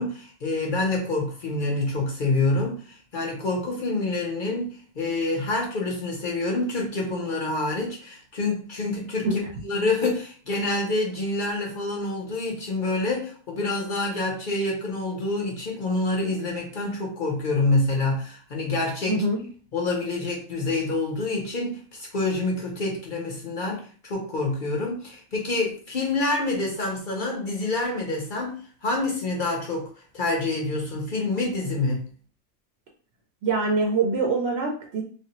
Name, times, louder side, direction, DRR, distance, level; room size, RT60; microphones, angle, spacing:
voice 1, 0.0-9.3 9.6-19.2 19.7-32.1, left 2 dB, 55° left, -1 dB, 0.5 m, -27 dB
voice 2, 19.1-19.4 33.4-35.0, right 3 dB, 65° right, 1 dB, 0.6 m, -24 dB
3.3 x 2.0 x 2.8 m, 0.42 s
omnidirectional pair, 1.6 m